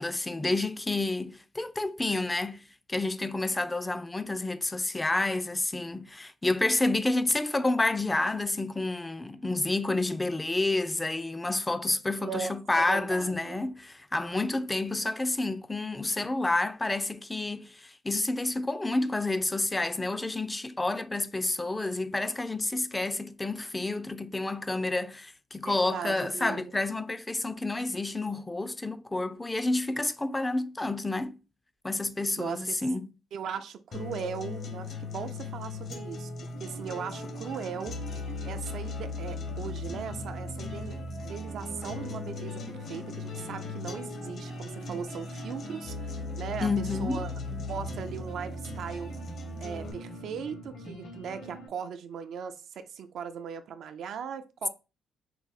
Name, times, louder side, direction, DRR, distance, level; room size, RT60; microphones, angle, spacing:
voice 1, 0.0-31.4 31.8-33.1 46.6-47.2, left 2 dB, 15° left, 0.4 m, -29 dB
voice 2, 12.2-13.6 25.6-26.7 32.4-32.8 33.3-38.0 38.4-41.0 41.2-47.3 47.7-49.2 49.6-54.7, right 7 dB, 70° right, 0.5 m, -38 dB
sound 1, 33.9-49.9, left 3 dB, 60° left, 1.1 m, -38 dB
sound 2, 36.5-51.7, left 1 dB, 80° left, 2.0 m, -44 dB
4.7 x 2.0 x 4.0 m
cardioid pair, 90°, 0 cm